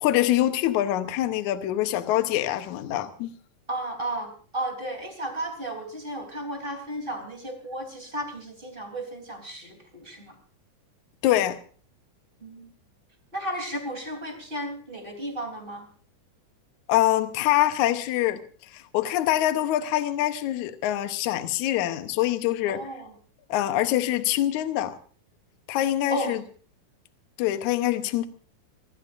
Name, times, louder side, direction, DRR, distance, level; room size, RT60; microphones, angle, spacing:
voice 1, 0.0-3.3 11.2-11.6 16.9-18.4 18.7-22.9 23.5-25.0 25.7-26.4 27.4-28.3, left 13 dB, 70° left, 2.2 m, -24 dB
voice 2, 3.7-10.4 12.4-12.7 13.3-15.8 22.7-23.1 26.1-26.4, right 1 dB, 15° right, 3.2 m, -34 dB
25.0 x 18.5 x 2.6 m
omnidirectional pair, 3.9 m